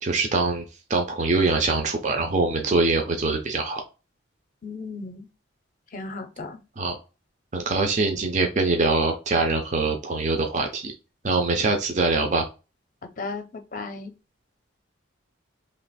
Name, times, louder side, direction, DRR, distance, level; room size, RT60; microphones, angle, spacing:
voice 1, 0.0-0.6 0.9-3.8 6.8-7.0 7.5-10.9 11.2-12.4, right 3 dB, 35° right, 4 dB, 0.5 m, -23 dB
voice 2, 4.6-5.3 5.9-6.6 13.0-13.4 13.7-14.1, left 3 dB, 40° left, 6 dB, 0.6 m, -35 dB
3.1 x 2.5 x 4.0 m, 0.30 s
head